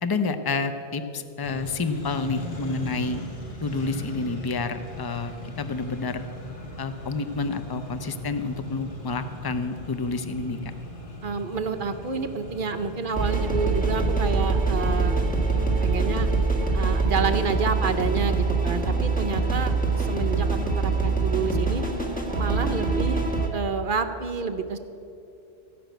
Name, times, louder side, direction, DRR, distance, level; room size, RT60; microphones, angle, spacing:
voice 1, 0.0-3.2 3.6-6.2 6.8-10.6, left 4 dB, 25° left, 9 dB, 0.5 m, -29 dB
Accelerating revving vroom, 1.4-16.4, left 1 dB, 45° left, 1.8 m, -39 dB
voice 2, 11.2-15.2 15.8-16.3 16.7-20.5 20.8-21.8 22.4-23.2 23.5-24.8, right 5 dB, 50° right, 8 dB, 0.9 m, -29 dB
sound 1, 13.1-23.5, right 3 dB, 5° left, 1.6 m, -24 dB
15.0 x 6.0 x 9.1 m, 2.8 s
omnidirectional pair, 1.2 m